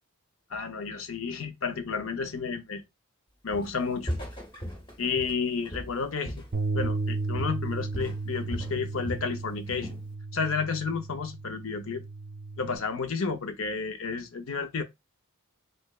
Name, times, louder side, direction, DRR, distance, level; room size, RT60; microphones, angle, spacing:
voice 1, 0.5-2.8 3.4-4.2 5.0-6.4 6.7-10.0 10.3-12.0 12.6-14.8, left 5 dB, 65° left, 0.6 m, -31 dB
Walk footsteps, 3.5-3.8 4.1-7.1 7.4-7.7 7.9-9.3 9.7-10.1, equal, 20° left, 0.8 m, -37 dB
Bass guitar, 6.5-12.8, right 3 dB, 40° right, 0.5 m, -34 dB
3.2 x 3.2 x 2.3 m
head